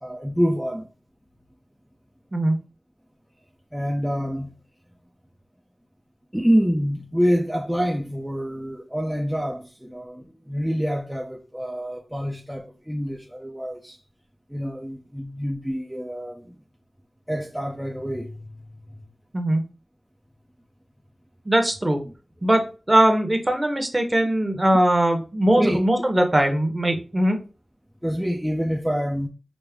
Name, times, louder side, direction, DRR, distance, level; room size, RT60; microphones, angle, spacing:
voice 1, 0.0-0.9 3.7-4.5 6.3-14.0 14.5-16.6 17.3-18.4 25.6-25.8 28.0-29.3, equal, 5° right, 0.5 m, -26 dB
voice 2, 21.4-22.0 22.4-22.6 22.9-27.4, right 1 dB, 25° right, 1.0 m, -20 dB
5.2 x 2.0 x 3.5 m
wide cardioid pair, 60°, 0 cm